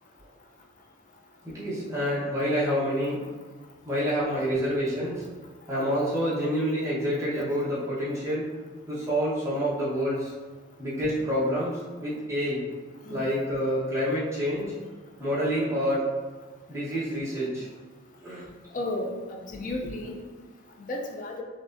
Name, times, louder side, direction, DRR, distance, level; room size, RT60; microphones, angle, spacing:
voice 1, 1.4-3.2 3.8-5.3 5.7-8.5 8.9-10.3 10.8-12.7 13.1-14.7 15.2-16.1 16.7-17.7 18.2-18.5, equal, 15° right, -9 dB, 1.0 m, -28 dB
voice 2, 18.7-20.2 20.8-21.4, left 1 dB, 40° left, 1 dB, 0.4 m, -33 dB
4.7 x 2.4 x 2.5 m, 1.4 s
head